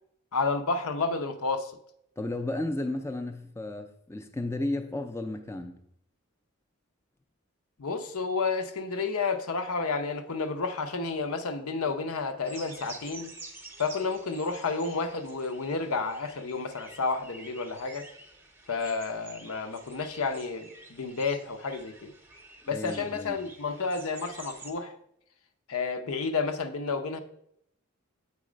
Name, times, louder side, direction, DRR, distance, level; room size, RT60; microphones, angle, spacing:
voice 1, 0.3-1.7 7.8-13.3 13.8-18.1 18.7-22.1 22.7-24.9 25.7-27.2, left 4 dB, 80° left, 0.7 m, -31 dB
voice 2, 2.2-5.9 22.7-23.4, left 2 dB, 10° left, 0.4 m, -33 dB
sound 1, 12.4-24.7, right 3 dB, 10° right, 0.8 m, -49 dB
8.4 x 4.2 x 5.0 m
head